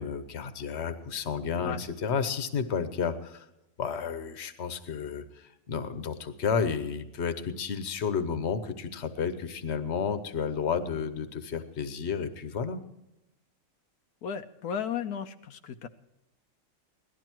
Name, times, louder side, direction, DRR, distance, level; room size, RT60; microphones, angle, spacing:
voice 1, 0.0-3.5 3.8-12.8, left 6 dB, 50° left, 10 dB, 1.3 m, -31 dB
voice 2, 14.2-15.9, left 7 dB, 85° left, 8 dB, 1.3 m, -34 dB
17.5 x 12.5 x 4.6 m, 0.90 s
omnidirectional pair, 1.6 m